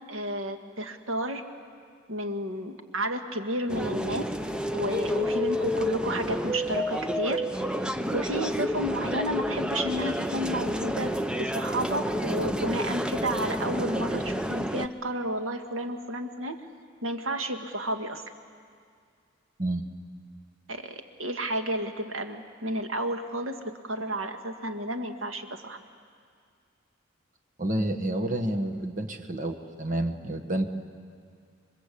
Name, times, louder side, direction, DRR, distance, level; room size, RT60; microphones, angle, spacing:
voice 1, 0.1-1.4 2.1-4.3 4.7-7.4 8.1-16.6 17.0-18.2 20.7-25.8, right 1 dB, 90° right, 6 dB, 1.8 m, -32 dB
sound 1, 3.7-14.9, equal, 5° right, 0.6 m, -30 dB
voice 2, 27.6-30.6, right 1 dB, 40° right, 4 dB, 1.4 m, -29 dB
27.5 x 24.0 x 8.5 m, 2.2 s
head